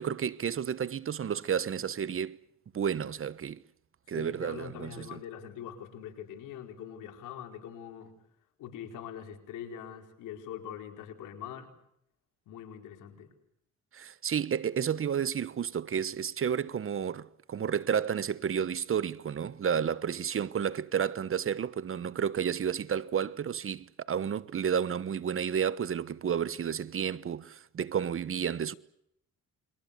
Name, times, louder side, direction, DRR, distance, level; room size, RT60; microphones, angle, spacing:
voice 1, 0.0-2.4 2.7-3.6 4.1-5.2 13.9-28.7, right 8 dB, 45° right, 1.1 m, -31 dB
voice 2, 4.1-8.2 8.6-11.7 12.5-13.3, left 9 dB, 90° left, 4.6 m, -43 dB
30.0 x 23.0 x 6.8 m
cardioid pair, 90°, 30 cm